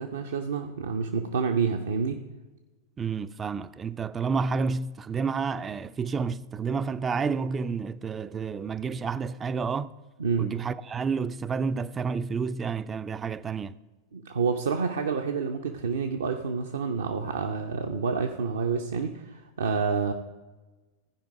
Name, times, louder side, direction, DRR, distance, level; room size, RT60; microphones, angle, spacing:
voice 1, 0.0-2.2 10.2-10.5 14.1-20.1, right 5 dB, 65° right, 0.6 m, -28 dB
voice 2, 3.0-9.9 10.4-13.8, right 5 dB, 20° right, 0.4 m, -30 dB
15.5 x 5.1 x 5.0 m
figure-of-eight pair, 90°, 0 cm